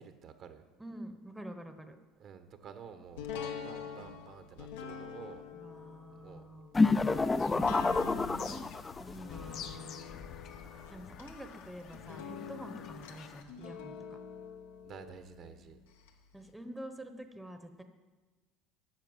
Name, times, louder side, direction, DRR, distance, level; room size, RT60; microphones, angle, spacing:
voice 1, 0.0-0.7 2.2-5.4 6.2-6.5 7.7-8.7 14.8-15.8, right 7 dB, 50° right, 9 dB, 1.1 m, -51 dB
voice 2, 0.8-2.0 5.5-6.7 9.0-10.0 10.9-14.2 16.3-17.8, right 1 dB, 5° right, 7 dB, 0.9 m, -47 dB
sound 1, 3.2-16.1 16.5-16.6, left 6 dB, 90° left, 1.1 m, -46 dB
sound 2, 6.7-9.1, left 3 dB, 20° left, 0.4 m, -28 dB
Bird vocalization bird call bird song, 7.0-13.4, left 8 dB, 55° left, 0.9 m, -49 dB
10.5 x 6.6 x 7.9 m, 1.3 s
supercardioid pair, 95°, 0 cm